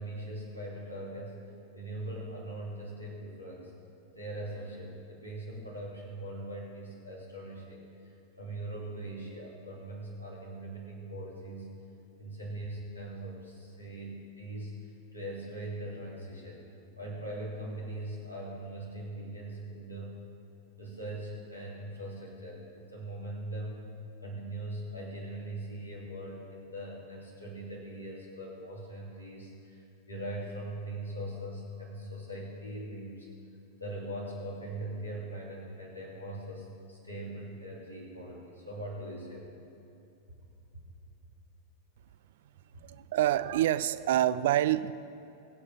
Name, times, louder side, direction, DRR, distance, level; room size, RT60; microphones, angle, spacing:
voice 1, 0.0-1.4 1.7-3.7 4.1-7.8 8.4-11.7 12.2-14.8 15.1-16.6 17.0-20.1 20.8-23.9 24.2-33.3 33.8-39.6, right 1 dB, 85° left, -4 dB, 3.2 m, -41 dB
voice 2, 42.8-44.9, right 13 dB, 55° right, 15 dB, 0.4 m, -27 dB
23.5 x 8.1 x 3.6 m, 2.8 s
figure-of-eight pair, 90°, 0 cm